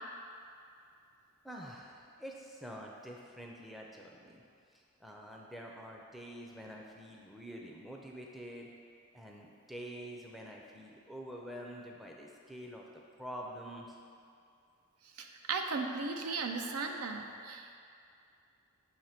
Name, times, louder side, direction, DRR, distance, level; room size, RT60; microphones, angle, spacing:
voice 1, 1.4-4.4 4.7-8.7 9.1-12.9 13.2-14.0, equal, ahead, -1 dB, 0.4 m, -47 dB
voice 2, 15.2-17.8, right 4 dB, 90° right, 4 dB, 0.6 m, -36 dB
7.1 x 3.0 x 5.7 m, 2.4 s
head